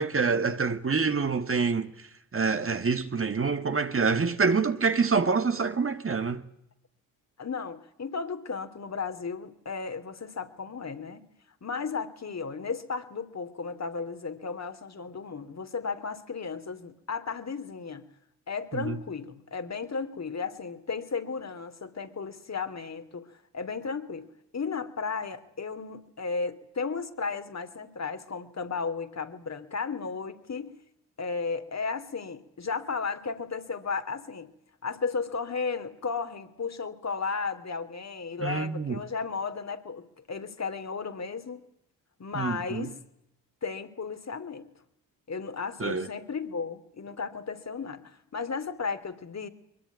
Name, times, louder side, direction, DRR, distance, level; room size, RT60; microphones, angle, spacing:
voice 1, 0.0-1.9 2.3-6.4 18.7-19.0 38.4-39.0 42.3-42.9 45.8-46.1, right 5 dB, 30° right, 1.8 m, -26 dB
voice 2, 7.4-11.2 11.6-18.1 18.5-30.8 31.2-34.5 34.8-41.6 42.2-43.0 43.6-44.7 45.3-49.5, left 5 dB, 40° left, 2.8 m, -34 dB
22.0 x 22.0 x 9.4 m
supercardioid pair, 55°, 42 cm